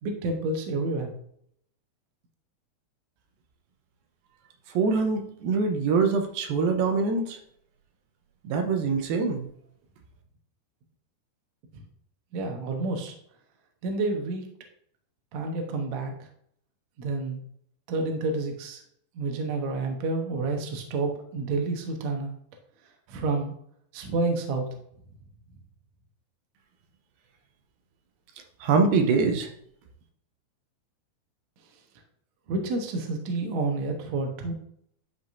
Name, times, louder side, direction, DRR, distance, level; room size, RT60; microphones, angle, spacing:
voice 1, 0.0-1.1 12.3-13.1 13.8-14.4 15.3-16.1 17.0-17.4 17.9-18.8 19.1-22.3 23.1-23.5 23.9-24.6 32.5-34.5, right 3 dB, 90° right, 4 dB, 1.6 m, -29 dB
voice 2, 4.7-7.4 8.4-9.5 28.6-29.5, right 4 dB, 75° right, 4 dB, 2.3 m, -24 dB
11.0 x 4.8 x 2.6 m, 0.70 s
omnidirectional pair, 4.8 m